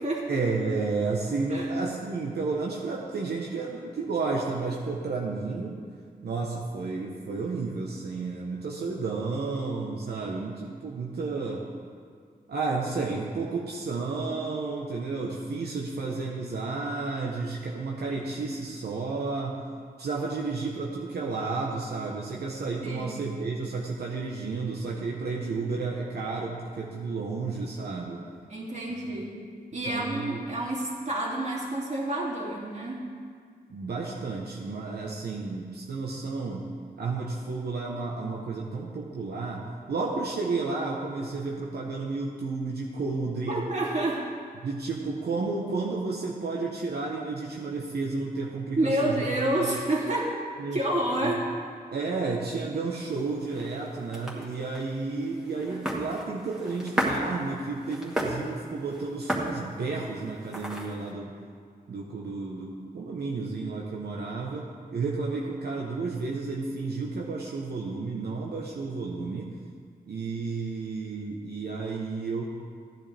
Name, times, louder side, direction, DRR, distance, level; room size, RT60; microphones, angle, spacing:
voice 1, 0.3-5.8 6.2-11.7 12.5-19.6 20.0-28.2 29.1-29.2 29.9-30.4 33.7-36.7 37.0-43.6 44.6-49.8 50.6-50.8 51.2-51.4 51.9-61.3 61.9-69.6 70.1-72.4, right 3 dB, 85° right, -2 dB, 1.1 m, -32 dB
voice 2, 22.8-23.3 28.5-29.3 29.7-33.0 43.5-44.2 48.8-50.3 50.7-51.5, right 1 dB, 45° right, -4 dB, 2.8 m, -29 dB
sound 1, 53.0-61.1, equal, 5° right, 2.1 m, -35 dB
15.0 x 10.5 x 3.5 m, 2.1 s
wide cardioid pair, 85°, 16 cm